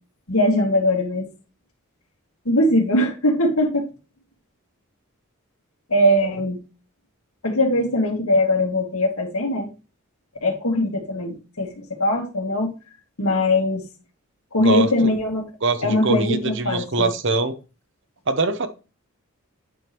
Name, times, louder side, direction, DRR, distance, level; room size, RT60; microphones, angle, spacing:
voice 1, 0.3-1.3 2.5-3.9 5.9-6.6 7.4-9.7 10.4-12.7 13.2-13.8 14.5-15.5 15.8-17.1, left 1 dB, 90° left, 2.1 m, -21 dB
voice 2, 14.6-15.1 15.6-17.5 18.3-18.7, right 3 dB, 60° right, 0.9 m, -23 dB
9.1 x 5.2 x 3.0 m
head